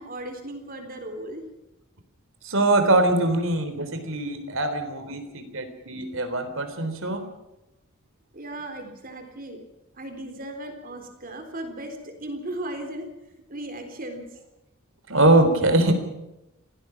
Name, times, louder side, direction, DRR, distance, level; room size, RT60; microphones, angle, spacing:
voice 1, 0.0-1.4 8.3-9.6 9.9-13.1 13.5-14.2, right 1 dB, 45° right, 6 dB, 3.8 m, -36 dB
voice 2, 2.4-7.3 15.1-15.9, right 2 dB, 65° right, 8 dB, 3.7 m, -22 dB
26.5 x 18.0 x 6.0 m, 0.94 s
head